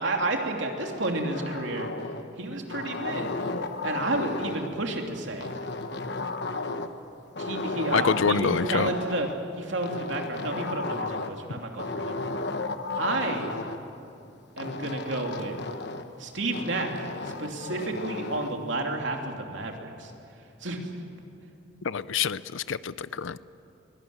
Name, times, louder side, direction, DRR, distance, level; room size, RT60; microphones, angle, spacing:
voice 1, 0.0-1.9 2.4-3.3 3.8-5.5 7.4-9.3 9.6-12.2 13.0-13.5 14.6-15.6 16.2-20.1 20.6-20.8, right 2 dB, 70° right, 2 dB, 2.9 m, -31 dB
sound 1, 0.8-2.3 2.7-4.8 5.4-7.0 7.3-9.4 9.8-11.4 11.8-13.8 14.6-16.1 16.5-18.6, left 3 dB, 60° left, 1.2 m, -34 dB
voice 2, 7.9-8.9 21.8-23.4, left 6 dB, 80° left, 17 dB, 0.6 m, -26 dB
23.0 x 18.0 x 9.5 m, 2.7 s
head